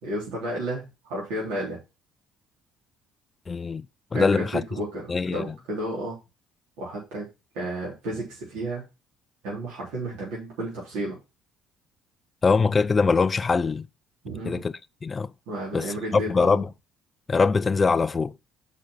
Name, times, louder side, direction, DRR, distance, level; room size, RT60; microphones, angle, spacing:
voice 1, 0.0-1.8 4.1-6.2 6.8-7.3 7.5-8.8 9.4-11.2 14.2-14.6 15.5-16.6, right 1 dB, 70° right, 3.8 m, -32 dB
voice 2, 3.5-3.9 4.1-4.6 5.1-5.5 12.4-13.9 14.4-14.7 15.0-15.3 15.7-16.7 17.3-18.3, left 4 dB, 30° left, 0.5 m, -23 dB
6.4 x 5.0 x 6.1 m
hypercardioid pair, 55°, 0 cm